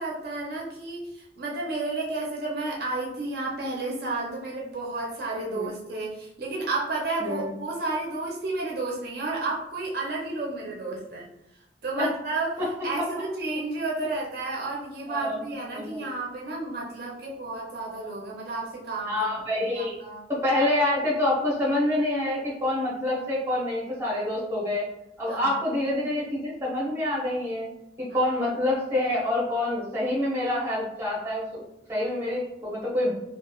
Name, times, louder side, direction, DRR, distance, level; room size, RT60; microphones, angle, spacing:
voice 1, 0.0-11.3 11.8-19.3 19.7-20.2 25.3-25.6, right 2 dB, 60° right, -3 dB, 0.5 m, -32 dB
voice 2, 7.2-7.5 12.0-12.1 13.0-13.1 15.1-15.4 15.7-16.1 19.1-19.9 20.3-24.9 25.2-27.7 28.0-31.6 31.9-33.1, left 1 dB, 15° right, -5 dB, 0.8 m, -27 dB
3.0 x 2.3 x 2.3 m, 0.85 s
head